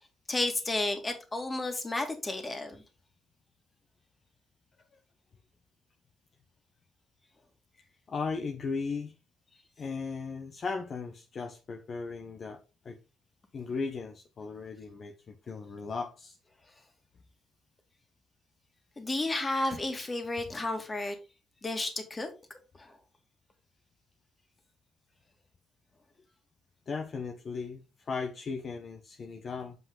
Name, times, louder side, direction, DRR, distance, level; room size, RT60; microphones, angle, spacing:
voice 1, 0.3-2.8 19.0-21.2 21.6-22.3 22.8-22.9, left 2 dB, 25° left, 2.3 m, -32 dB
voice 2, 8.1-9.1 9.8-13.0 13.5-16.4 26.9-29.8, left 4 dB, 50° left, 1.1 m, -37 dB
8.0 x 5.5 x 3.9 m
cardioid pair, 90°, 0 cm